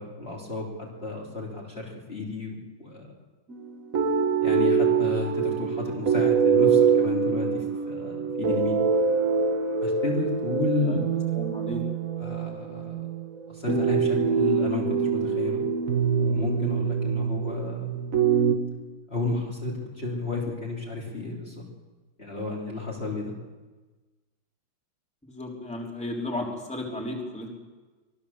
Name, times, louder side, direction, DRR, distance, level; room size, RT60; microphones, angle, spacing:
voice 1, 0.0-3.1 4.4-8.8 9.8-11.0 12.2-13.0 13.5-15.6 16.1-17.9 19.1-21.6 22.2-23.3, left 3 dB, 30° left, -3 dB, 3.6 m, -32 dB
sound 1, 3.5-18.6, right 6 dB, 45° right, 1.7 m, -24 dB
voice 2, 11.3-11.8 25.2-27.6, left 1 dB, 5° left, -1 dB, 3.5 m, -34 dB
25.0 x 19.0 x 7.2 m, 1.3 s
omnidirectional pair, 2.3 m